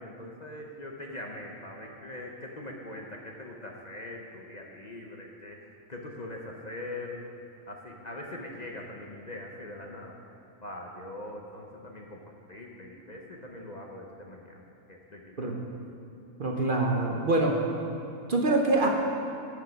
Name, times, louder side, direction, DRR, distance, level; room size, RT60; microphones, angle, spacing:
voice 1, 0.0-7.3 7.7-10.2 10.6-14.6 14.9-15.5, left 1 dB, 40° left, 0 dB, 0.8 m, -42 dB
voice 2, 16.4-17.6 18.3-18.9, right 2 dB, 45° right, 0 dB, 0.9 m, -25 dB
13.0 x 6.4 x 5.2 m, 2.8 s
omnidirectional pair, 1.4 m